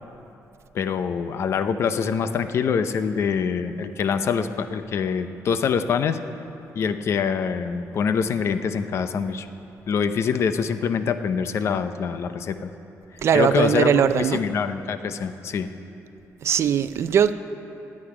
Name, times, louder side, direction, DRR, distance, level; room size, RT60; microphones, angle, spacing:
voice 1, 0.7-6.2 6.7-9.5 9.9-12.7 13.3-15.7, left 6 dB, 55° left, 10 dB, 0.6 m, -25 dB
voice 2, 13.2-14.4 16.4-17.3, right 8 dB, 50° right, 12 dB, 0.5 m, -20 dB
19.0 x 8.6 x 4.9 m, 2.9 s
cardioid pair, 160°, 6 cm